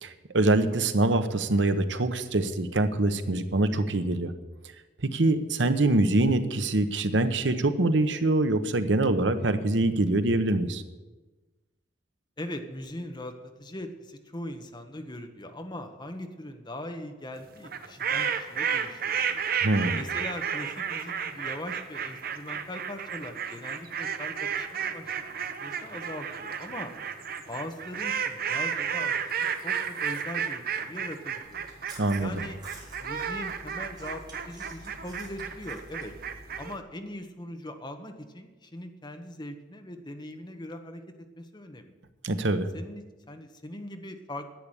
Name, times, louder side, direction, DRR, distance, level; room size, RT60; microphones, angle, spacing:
voice 1, 0.0-4.3 5.0-10.8 19.6-20.0 32.0-32.4 42.2-42.7, right 2 dB, 90° right, 10 dB, 1.0 m, -24 dB
voice 2, 12.4-13.3 13.6-19.4 19.9-25.1 25.6-26.9 27.5-29.1 29.6-31.7 32.2-32.6 33.0-36.1 36.6-41.0 41.4-41.9 42.7-44.4, left 1 dB, 25° left, 6 dB, 1.2 m, -40 dB
sound 1, 17.6-36.7, right 7 dB, 55° right, 1.0 m, -32 dB
Chewing mastication, 31.4-36.7, right 1 dB, 25° right, 3.6 m, -49 dB
10.5 x 8.3 x 9.9 m, 1.2 s
head